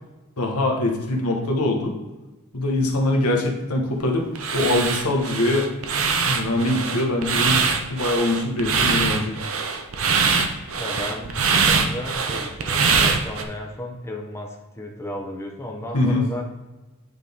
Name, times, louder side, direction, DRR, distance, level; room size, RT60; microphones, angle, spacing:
voice 1, 0.4-2.0 2.5-5.7 6.2-7.6 7.9-9.3 15.9-16.2, left 1 dB, 80° left, 1 dB, 1.2 m, -23 dB
sound 1, 4.3-13.4, right 5 dB, 65° right, 0.7 m, -23 dB
voice 2, 10.8-16.5, left 1 dB, 10° left, 0 dB, 0.8 m, -34 dB
9.1 x 4.0 x 3.5 m, 1.1 s
head